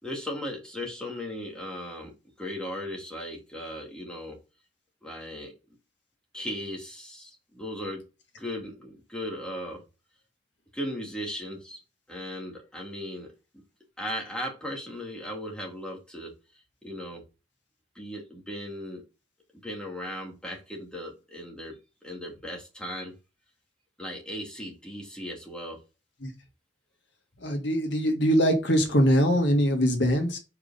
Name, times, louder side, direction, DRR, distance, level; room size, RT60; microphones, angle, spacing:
voice 1, 0.0-2.1 2.4-4.4 5.0-5.5 6.3-8.1 8.4-9.8 10.7-11.8 12.1-13.3 14.0-16.3 16.8-17.2 18.0-19.0 19.6-21.8 22.0-23.1 24.0-25.8, left 1 dB, 5° left, 1.9 m, -37 dB
voice 2, 27.4-30.4, equal, 65° left, 1.8 m, -22 dB
4.9 x 4.7 x 5.3 m
head